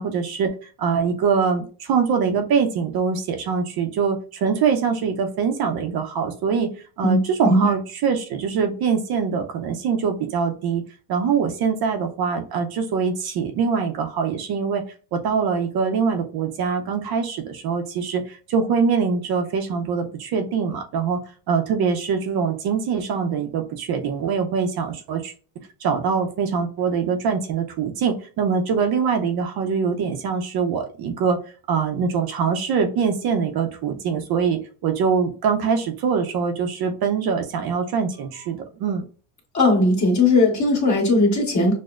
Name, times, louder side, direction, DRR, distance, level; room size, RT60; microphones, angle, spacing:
voice 1, 0.0-6.7 7.0-10.8 11.1-14.8 15.1-21.2 21.5-25.3 25.8-31.4 31.7-39.0, right 6 dB, 50° right, 5 dB, 0.6 m, -23 dB
voice 2, 7.0-7.7 39.5-41.7, left 2 dB, 35° left, -1 dB, 1.5 m, -18 dB
6.2 x 2.1 x 2.4 m, 0.38 s
cardioid pair, 125°, 48 cm